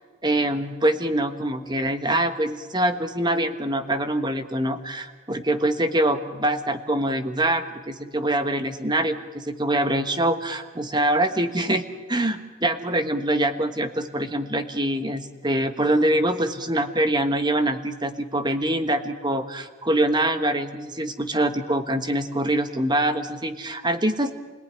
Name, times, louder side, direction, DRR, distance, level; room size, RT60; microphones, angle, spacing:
voice 1, 0.2-11.8 12.1-24.3, right 1 dB, 20° right, 9 dB, 1.3 m, -24 dB
29.0 x 18.5 x 10.0 m, 1.4 s
head